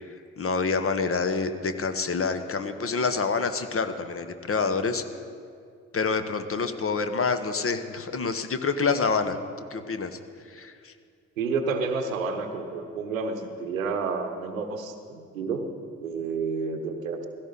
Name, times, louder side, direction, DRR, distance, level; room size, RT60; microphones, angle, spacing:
voice 1, 0.4-5.0 5.9-9.4 9.7-10.2 10.5-10.9, left 4 dB, 35° left, 9 dB, 1.1 m, -27 dB
voice 2, 11.4-15.7 16.0-17.3, right 4 dB, 85° right, 7 dB, 0.9 m, -30 dB
16.0 x 13.5 x 4.0 m, 2.3 s
figure-of-eight pair, 45°, 39 cm